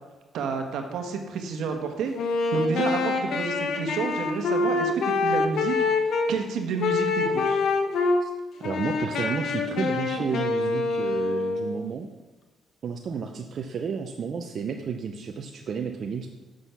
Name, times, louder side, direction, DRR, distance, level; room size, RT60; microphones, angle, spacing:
voice 1, 0.3-2.1 2.5-7.6, right 5 dB, 80° right, 5 dB, 1.2 m, -30 dB
Wind instrument woodwind instrument, 2.1-6.3 6.8-8.2 8.6-11.8, left 3 dB, 70° left, 1.2 m, -25 dB
voice 2, 8.6-12.1 12.8-16.3, right 6 dB, 55° right, 4 dB, 0.7 m, -32 dB
7.9 x 6.3 x 5.7 m, 1.2 s
cardioid pair, 90°, 0 cm